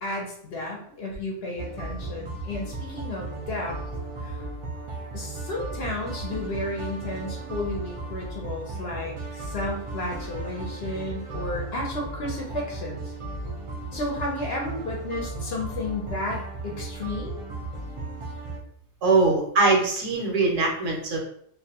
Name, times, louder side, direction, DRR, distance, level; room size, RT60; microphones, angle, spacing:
voice 1, 0.0-3.8 4.2-4.4 5.1-13.1 13.9-17.4, left 2 dB, 60° left, -2 dB, 0.8 m, -33 dB
sound 1, 1.6-18.6, right 2 dB, 40° right, 0.5 m, -35 dB
voice 2, 19.0-21.2, right 3 dB, 70° right, -1 dB, 1.1 m, -22 dB
2.6 x 2.2 x 2.8 m, 0.65 s
omnidirectional pair, 1.4 m